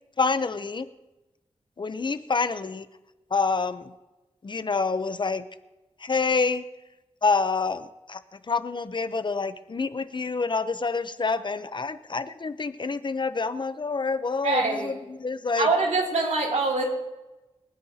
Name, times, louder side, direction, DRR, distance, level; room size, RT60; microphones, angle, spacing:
voice 1, 0.2-0.9 1.8-2.9 3.3-3.9 4.4-5.4 6.0-6.7 7.2-15.7, left 4 dB, 40° left, 12 dB, 0.7 m, -27 dB
voice 2, 14.4-14.9 15.6-16.8, right 3 dB, 85° right, -1 dB, 2.9 m, -24 dB
26.5 x 9.7 x 2.8 m, 1.1 s
wide cardioid pair, 100°, 12 cm